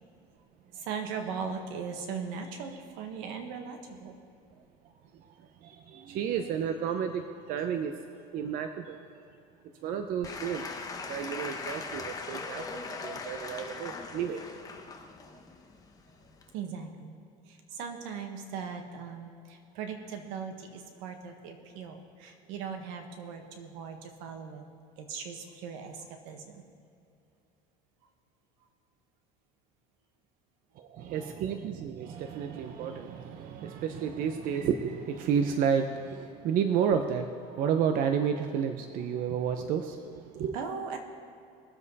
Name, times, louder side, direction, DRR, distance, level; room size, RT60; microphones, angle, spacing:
voice 1, 0.7-4.2 16.5-17.1 17.5-24.7 25.0-26.6 40.5-41.0, right 6 dB, 90° right, 4 dB, 1.7 m, -39 dB
voice 2, 5.1-9.0 9.8-10.8 11.1-14.5 30.8-40.6, right 7 dB, 60° right, 6 dB, 0.8 m, -31 dB
Applause / Crowd, 10.2-16.5, left 4 dB, 20° left, 1.3 m, -40 dB
21.5 x 7.5 x 4.1 m, 2.6 s
cardioid pair, 130°, 16 cm